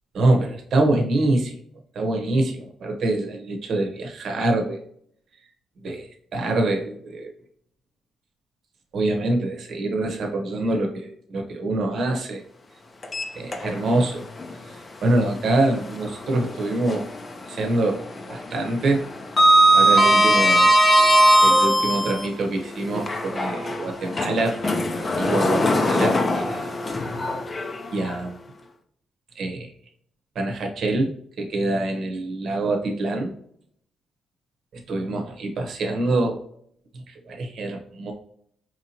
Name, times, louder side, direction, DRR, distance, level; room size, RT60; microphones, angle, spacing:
voice 1, 0.1-1.6 1.9-4.8 5.8-7.3 8.9-12.4 13.3-14.2 14.7-17.1 17.5-18.0 18.3-19.1 19.7-20.7 21.4-26.7 27.9-28.4 29.3-29.7 30.3-31.1 31.4-33.3 34.9-36.4 36.9-38.1, right 2 dB, 60° right, 2 dB, 0.9 m, -25 dB
Sliding door, 13.0-14.0 14.4-14.5 16.2-17.3 17.5-17.9 18.2-22.3 22.9-28.1, right 1 dB, 30° left, 0.6 m, -19 dB
4.6 x 2.9 x 2.8 m, 0.65 s
cardioid pair, 90°, 0 cm